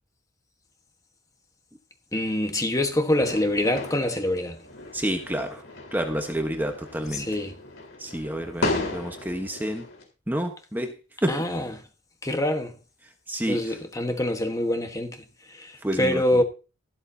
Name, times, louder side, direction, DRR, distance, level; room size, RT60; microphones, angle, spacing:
voice 1, 2.1-4.6 7.1-7.6 11.3-11.7 12.2-12.7 13.5-16.4, left 1 dB, 15° left, 1.3 m, -25 dB
sound 1, 3.2-10.0, left 2 dB, 75° left, 4.1 m, -35 dB
voice 2, 4.9-5.6 5.9-7.3 8.0-9.8 10.3-10.9 11.2-11.5 13.3-13.8 15.8-16.2, right 1 dB, 10° right, 1.1 m, -29 dB
14.0 x 12.5 x 2.8 m
head